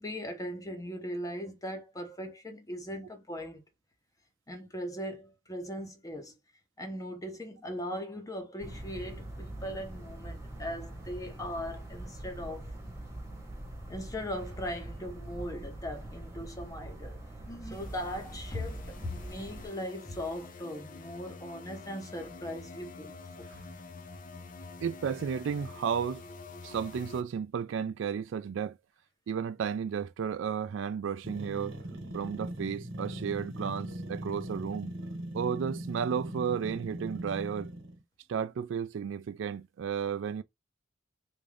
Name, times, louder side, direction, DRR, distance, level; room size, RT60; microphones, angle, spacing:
voice 1, 0.0-3.6 4.5-6.4 6.8-12.7 13.9-17.2 17.4-23.5, equal, 20° left, 0.8 m, -39 dB
sound 1, 8.6-19.7, right 1 dB, 15° right, 1.1 m, -43 dB
sound 2, 17.7-27.2, left 3 dB, 45° left, 0.5 m, -47 dB
voice 2, 24.8-26.2 26.6-28.8 29.3-31.8 32.1-34.9 35.3-37.7 38.3-40.4, right 7 dB, 70° right, 0.3 m, -33 dB
sound 3, 31.2-38.0, right 1 dB, 85° right, 1.1 m, -40 dB
3.6 x 2.5 x 3.3 m
head